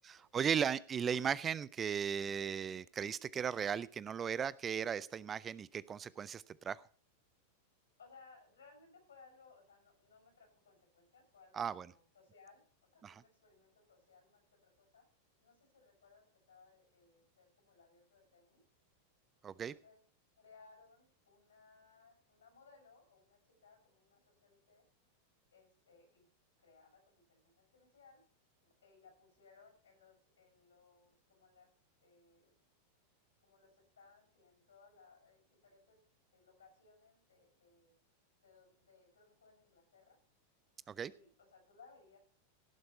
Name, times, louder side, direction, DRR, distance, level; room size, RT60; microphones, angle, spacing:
voice 1, 0.0-6.8 11.5-11.9 13.0-13.2 19.4-19.7 40.9-41.1, right 7 dB, 20° right, 21 dB, 0.4 m, -37 dB
voice 2, 8.0-12.6 12.9-15.0 15.4-18.6 19.4-20.0 20.4-24.8 25.5-26.3 26.6-28.2 28.6-31.7 32.0-32.6 33.4-36.0 36.3-38.0 38.4-40.2 41.1-42.2, left 4 dB, 70° left, 5 dB, 6.1 m, -64 dB
17.5 x 7.8 x 4.3 m, 0.43 s
figure-of-eight pair, 90°, 0 cm